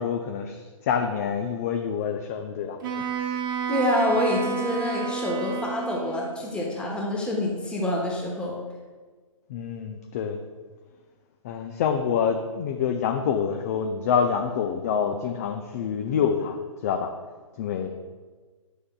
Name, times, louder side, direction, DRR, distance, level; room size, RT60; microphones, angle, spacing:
voice 1, 0.0-3.1 9.5-10.4 11.4-17.1 17.6-17.9, left 7 dB, 25° left, 5 dB, 0.4 m, -27 dB
Wind instrument woodwind instrument, 2.8-6.4, right 6 dB, 35° right, 1.1 m, -31 dB
voice 2, 3.7-8.6, left 1 dB, 5° left, -2 dB, 1.1 m, -26 dB
9.6 x 6.3 x 2.2 m, 1.4 s
figure-of-eight pair, 135°, 18 cm